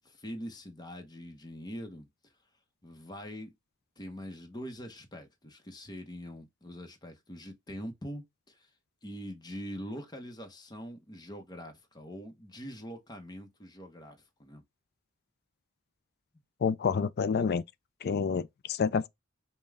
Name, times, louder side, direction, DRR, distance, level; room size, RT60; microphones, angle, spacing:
voice 1, 0.0-2.1 2.8-3.5 4.0-8.7 9.0-14.6, equal, 20° left, 0.8 m, -43 dB
voice 2, 16.6-17.6 18.0-19.1, left 6 dB, 50° left, 0.4 m, -28 dB
5.2 x 2.2 x 3.4 m
head